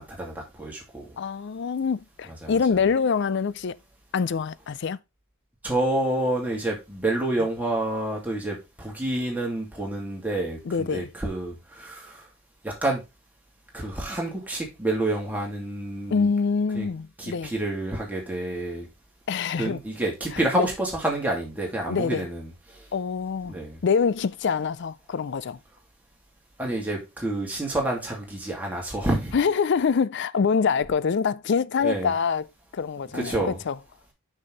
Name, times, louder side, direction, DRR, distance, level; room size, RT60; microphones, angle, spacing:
voice 1, 0.0-1.0 2.4-2.6 5.6-12.2 12.6-13.0 13.7-16.3 16.7-16.9 17.2-18.9 19.6-22.5 23.5-23.8 26.6-29.4 31.8-32.1 33.1-33.6, right 1 dB, 10° right, 2.6 m, -28 dB
voice 2, 1.2-3.8 4.1-5.0 10.7-11.1 16.1-17.5 19.3-19.8 20.5-20.7 21.9-22.2 22.9-25.6 29.3-32.5 32.7-33.8, left 5 dB, 55° left, 0.4 m, -25 dB
6.4 x 6.2 x 3.9 m
head